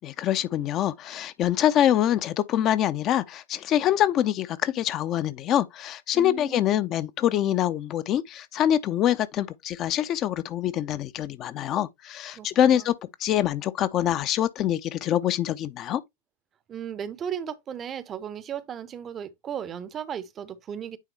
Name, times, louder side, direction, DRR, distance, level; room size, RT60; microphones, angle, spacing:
voice 1, 0.0-12.9 13.2-16.0, left 11 dB, 35° left, 0.5 m, -25 dB
voice 2, 6.1-7.0 12.3-12.9 16.7-21.0, right 8 dB, 25° right, 0.6 m, -36 dB
9.1 x 3.5 x 3.1 m
figure-of-eight pair, 90°, 0 cm